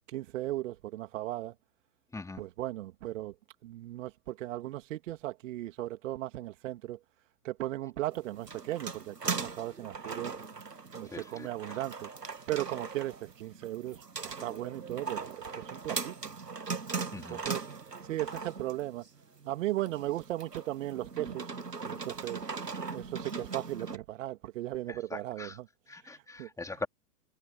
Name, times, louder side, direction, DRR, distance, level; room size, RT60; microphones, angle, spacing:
voice 1, 0.1-1.5 2.4-3.3 3.6-7.0 7.4-10.4 10.9-12.1 12.5-16.2 17.2-17.7 18.1-19.1 19.4-21.5 21.8-22.4 22.9-25.7 26.4-26.8, right 15 dB, 50° right, 2.7 m, -37 dB
voice 2, 2.1-2.4 11.1-11.5 17.1-17.4 24.9-25.6 25.9-26.9, left 3 dB, 5° left, 3.2 m, -41 dB
sound 1, 8.1-24.0, right 4 dB, 90° right, 1.5 m, -39 dB
figure-of-eight pair, 110°, 47 cm